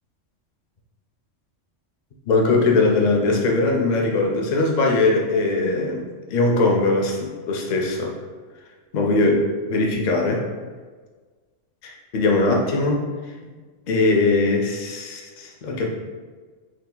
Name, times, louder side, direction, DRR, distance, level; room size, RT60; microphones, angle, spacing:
voice 1, 2.3-6.0 6.3-8.1 8.9-10.4 11.8-13.1 13.9-15.9, left 2 dB, 60° left, 0 dB, 0.4 m, -20 dB
2.7 x 2.4 x 3.7 m, 1.4 s
omnidirectional pair, 1.3 m